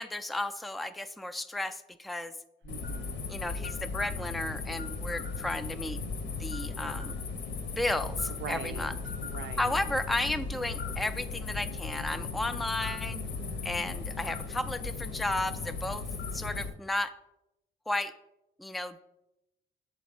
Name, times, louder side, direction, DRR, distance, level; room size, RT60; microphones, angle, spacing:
voice 1, 0.0-2.3 3.3-6.0 6.4-7.2 7.8-8.9 9.6-13.2 13.6-16.0 16.3-17.1 17.9-18.1 18.6-19.0, left 1 dB, ahead, 10 dB, 0.3 m, -33 dB
sound 1, 2.6-16.7, left 4 dB, 65° left, 0.8 m, -37 dB
voice 2, 2.6-3.3 8.3-8.9 9.2-9.8 13.1-14.0, right 9 dB, 70° right, 12 dB, 0.4 m, -43 dB
6.8 x 4.1 x 5.0 m, 0.89 s
cardioid pair, 90°, 20 cm